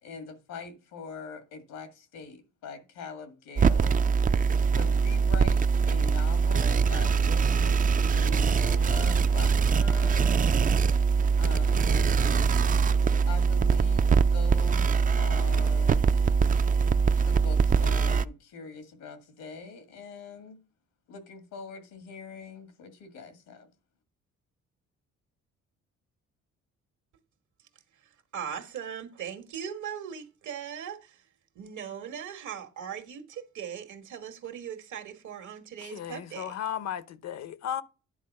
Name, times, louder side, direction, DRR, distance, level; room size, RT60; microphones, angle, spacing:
voice 1, 0.0-4.0 4.8-10.5 11.4-12.6 13.3-16.1 17.2-20.6 21.1-23.7, left 5 dB, 90° left, 2.0 m, -43 dB
sound 1, 3.6-18.2, right 5 dB, 30° right, 0.4 m, -23 dB
voice 2, 28.3-31.2 31.5-36.6, right 8 dB, 75° right, 1.5 m, -39 dB
voice 3, 35.8-37.8, left 10 dB, 60° left, 0.7 m, -35 dB
10.0 x 4.0 x 5.3 m
cardioid pair, 90°, 30 cm